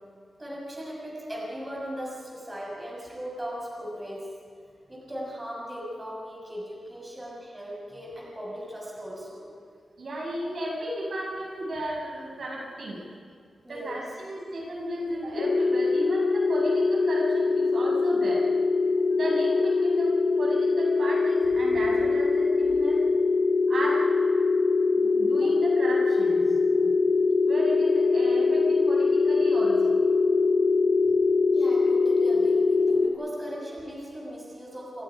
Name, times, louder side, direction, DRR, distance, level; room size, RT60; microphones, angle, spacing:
voice 1, 0.4-4.3 4.9-9.5 13.6-14.1 31.5-35.0, equal, 15° right, -3 dB, 6.6 m, -38 dB
voice 2, 10.0-13.0 13.7-18.4 19.1-23.1 23.7-24.0 25.0-26.9 27.4-29.9, right 1 dB, 55° right, -3 dB, 7.5 m, -34 dB
sound 1, 15.4-33.1, left 4 dB, 60° left, 3.8 m, -23 dB
29.0 x 27.5 x 5.2 m, 2.1 s
wide cardioid pair, 155°, 0 cm